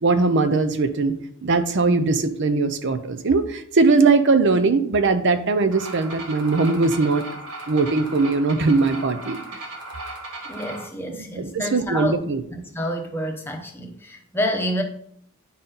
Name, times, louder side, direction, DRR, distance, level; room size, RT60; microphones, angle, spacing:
voice 1, 0.0-1.2 1.4-7.2 7.7-9.6 11.2-12.4, right 3 dB, 55° right, 10 dB, 0.6 m, -20 dB
sound 1, 5.7-10.9, right 2 dB, 85° right, 1.6 m, -36 dB
voice 2, 10.5-14.8, equal, 10° left, 3 dB, 0.9 m, -28 dB
10.0 x 4.1 x 4.0 m, 0.66 s
head